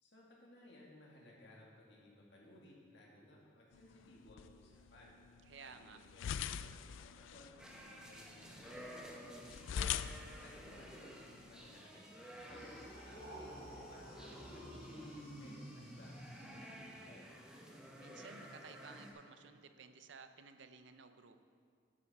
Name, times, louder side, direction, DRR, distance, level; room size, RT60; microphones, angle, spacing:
voice 1, 0.0-5.1 5.6-7.5 7.9-10.1 10.4-12.7 13.0-16.1 16.4-17.3, left 1 dB, 65° left, -3 dB, 2.1 m, -60 dB
sound 1, 3.7-11.8, left 8 dB, 85° left, 0.3 m, -45 dB
voice 2, 5.4-6.0 18.0-21.4, right 5 dB, 70° right, 9 dB, 0.6 m, -55 dB
sound 2, 7.6-19.1, equal, 5° right, 1.0 m, -54 dB
sound 3, 12.4-17.2, equal, 30° left, 2.6 m, -51 dB
11.0 x 8.6 x 4.3 m, 2.1 s
head